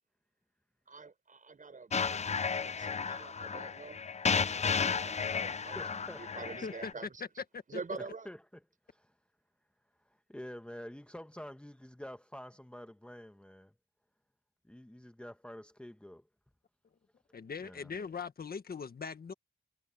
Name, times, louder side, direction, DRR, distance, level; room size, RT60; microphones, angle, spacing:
voice 1, 0.9-4.0 4.4-7.2 7.7-8.3, right 4 dB, 50° right, 6.7 m, -46 dB
sound 1, 1.9-6.9, left 5 dB, 40° left, 0.6 m, -33 dB
voice 2, 5.7-6.5 8.0-8.4 8.9-9.1 10.0-13.7 14.7-16.2 17.6-17.9, equal, 5° left, 1.4 m, -48 dB
voice 3, 17.3-19.3, left 5 dB, 60° left, 1.7 m, -41 dB
cardioid pair, 65°, 18 cm